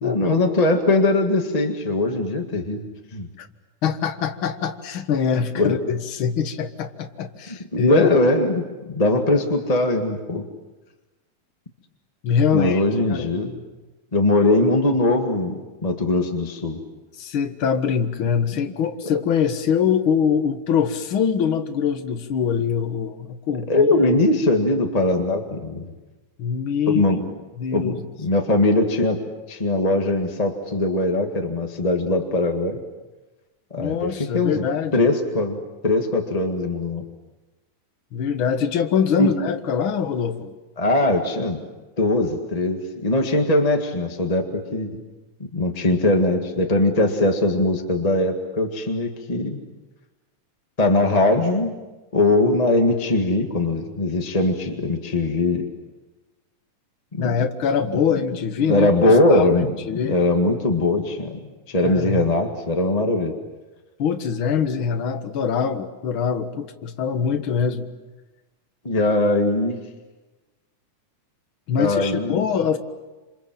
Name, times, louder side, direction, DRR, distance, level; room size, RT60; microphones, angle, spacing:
voice 1, 0.0-2.8 3.1-3.3 5.5-5.7 7.5-10.4 12.5-13.6 14.1-16.8 18.6-18.7 19.1-19.2 23.7-25.9 26.9-27.3 27.7-29.2 29.5-32.8 33.7-34.7 34.9-37.0 39.2-39.3 40.8-41.6 42.0-45.0 45.5-49.6 50.8-51.7 52.1-55.6 57.1-57.3 58.6-61.4 61.7-63.3 68.8-69.8 71.8-72.4, left 2 dB, 20° left, 3 dB, 1.2 m, -21 dB
voice 2, 3.8-8.1 12.2-12.8 13.1-13.3 17.2-24.1 26.4-27.0 27.6-28.0 33.8-35.1 38.1-40.5 57.2-58.9 59.3-59.5 59.9-60.2 61.8-62.2 64.0-67.9 71.7-72.8, left 7 dB, 50° left, 7 dB, 1.8 m, -23 dB
27.5 x 27.5 x 7.6 m, 1.2 s
omnidirectional pair, 3.6 m